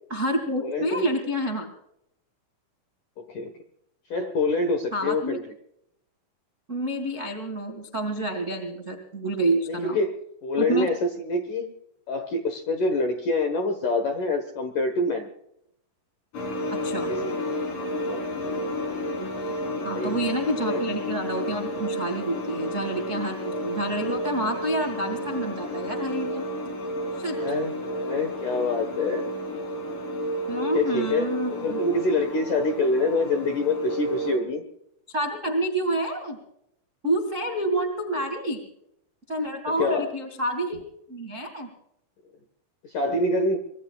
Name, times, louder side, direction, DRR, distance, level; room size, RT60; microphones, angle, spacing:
voice 1, 0.1-1.7 4.9-5.4 6.7-10.0 10.6-10.9 16.7-17.1 19.2-19.5 19.8-26.5 27.2-27.4 30.5-31.8 35.1-36.4 37.0-38.7 39.3-40.8 41.1-41.7, right 1 dB, 50° right, 5 dB, 0.9 m, -28 dB
voice 2, 0.6-1.1 3.2-3.5 4.1-5.4 9.7-11.7 12.1-15.3 17.1-17.4 18.0-18.2 19.8-20.1 20.6-20.8 27.3-29.3 30.1-30.2 30.7-34.6 39.7-40.1 42.9-43.6, left 2 dB, 70° left, 6 dB, 2.0 m, -26 dB
sound 1, 16.3-34.4, equal, 45° left, 5.0 m, -31 dB
25.0 x 22.0 x 2.4 m, 0.75 s
omnidirectional pair, 5.8 m